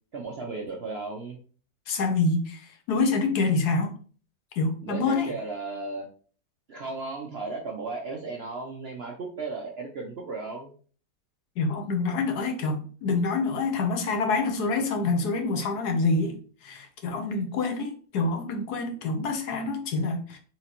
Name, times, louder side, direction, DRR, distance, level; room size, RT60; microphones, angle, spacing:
voice 1, 0.1-1.4 4.8-6.0 6.7-10.7 17.3-17.4, right 3 dB, 70° right, 1 dB, 0.6 m, -35 dB
voice 2, 1.9-3.9 4.6-5.3 11.6-16.4 16.6-20.4, left 3 dB, 70° left, 4 dB, 1.2 m, -26 dB
4.5 x 3.9 x 2.9 m, 0.42 s
omnidirectional pair, 1.9 m